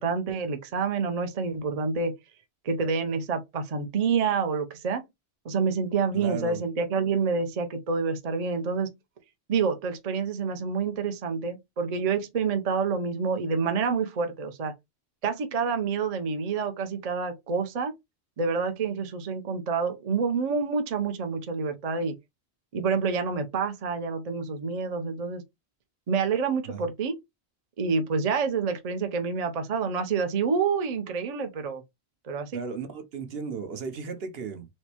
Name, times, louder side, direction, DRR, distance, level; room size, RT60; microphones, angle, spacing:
voice 1, 0.0-2.1 2.6-5.0 5.4-8.9 9.5-14.7 15.2-17.9 18.4-22.2 22.7-25.4 26.1-27.2 27.8-31.8 32.2-32.6, right 5 dB, 45° right, 0.6 m, -28 dB
voice 2, 6.1-6.6 26.7-26.9 32.5-34.7, right 6 dB, 65° right, 0.9 m, -35 dB
4.5 x 2.0 x 2.8 m
omnidirectional pair, 1.1 m